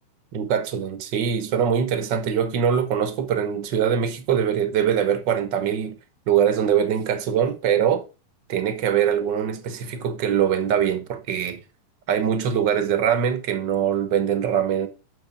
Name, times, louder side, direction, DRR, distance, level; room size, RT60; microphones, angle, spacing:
voice 1, 0.3-6.0 6.3-8.0 8.5-11.6 12.1-14.9, right 8 dB, 80° right, 1.0 m, -23 dB
10.0 x 6.4 x 5.2 m
omnidirectional pair, 3.8 m